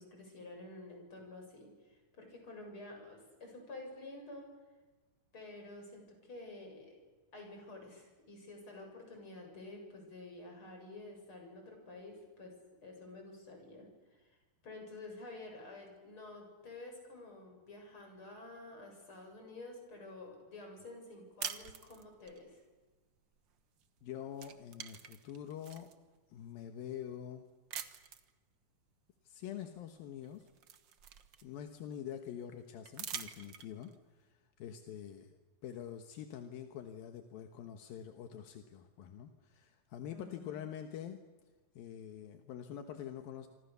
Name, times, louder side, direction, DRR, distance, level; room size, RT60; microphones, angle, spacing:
voice 1, 0.0-4.5 5.3-6.9 7.3-12.5 12.8-14.4 14.6-22.6 40.1-40.6, left 2 dB, 35° left, 2 dB, 8.1 m, -50 dB
sound 1, 21.4-22.4 23.8-24.0 24.3-25.9 26.6-26.7 27.7-28.3 29.7-29.8 30.2-31.8 32.8-33.9, right 8 dB, 85° right, 1.0 m, -45 dB
voice 2, 24.0-25.9 26.3-27.5 29.2-30.5 31.4-33.9 34.2-34.3 34.6-35.3 35.6-41.2 41.8-43.5, left 9 dB, 80° left, 6 dB, 3.1 m, -45 dB
27.0 x 26.0 x 6.9 m, 1.2 s
omnidirectional pair, 4.1 m